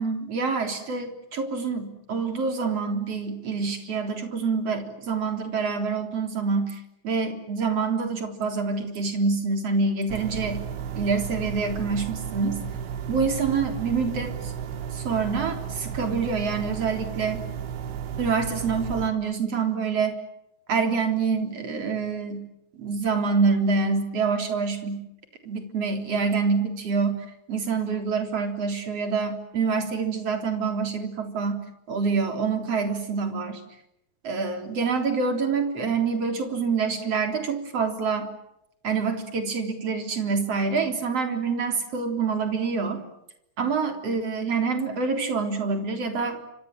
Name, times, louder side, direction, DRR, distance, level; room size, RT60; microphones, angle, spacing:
voice 1, 0.0-10.6 11.0-12.6 13.1-14.5 14.9-17.4 18.2-20.2 20.7-22.4 22.7-25.0 25.4-27.1 27.5-31.6 31.9-33.6 34.2-38.3 38.8-43.0 43.6-46.4, right 5 dB, 35° right, 5 dB, 4.3 m, -26 dB
sound 1, 10.1-19.1, right 7 dB, 90° right, 4.6 m, -34 dB
30.0 x 26.0 x 7.6 m, 0.82 s
omnidirectional pair, 4.9 m